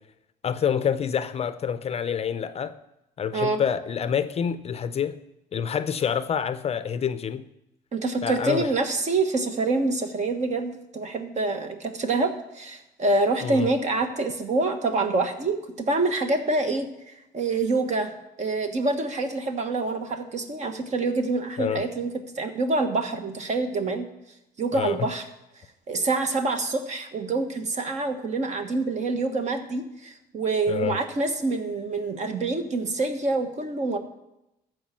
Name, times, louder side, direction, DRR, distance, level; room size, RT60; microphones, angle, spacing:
voice 1, 0.4-2.8 3.2-5.2 5.5-7.4 8.2-8.7 13.4-13.7 21.6-21.8 24.7-25.1 30.7-31.0, left 8 dB, 40° left, 0.5 m, -27 dB
voice 2, 7.9-16.9 17.3-18.1 18.4-22.1 22.3-24.1 24.6-25.2 25.9-34.0, right 3 dB, 45° right, 1.4 m, -26 dB
13.5 x 4.8 x 7.4 m
cardioid pair, 110°, 17 cm